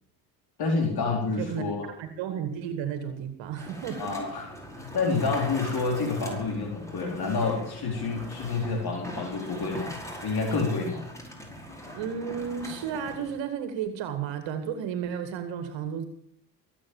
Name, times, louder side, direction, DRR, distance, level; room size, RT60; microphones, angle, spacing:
voice 1, 0.6-1.9 4.0-4.5 4.8-11.0, left 4 dB, 50° left, 2 dB, 4.0 m, -28 dB
voice 2, 1.4-4.3 12.0-16.0, right 8 dB, 65° right, 8 dB, 2.1 m, -33 dB
sound 1, 3.6-13.4, equal, 5° left, 5.5 m, -41 dB
22.5 x 8.8 x 7.2 m, 0.62 s
hypercardioid pair, 60°, 49 cm